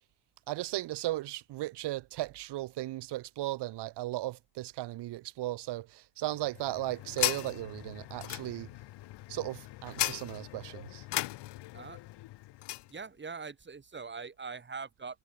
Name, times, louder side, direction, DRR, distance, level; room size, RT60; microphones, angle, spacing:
voice 1, 0.5-8.7 9.3-11.0, right 16 dB, 65° right, 3.0 m, -36 dB
sound 1, 6.3-12.9, left 17 dB, 70° left, 2.7 m, -37 dB
voice 2, 12.9-15.2, right 5 dB, 25° right, 3.8 m, -42 dB
supercardioid pair, 95°, 43 cm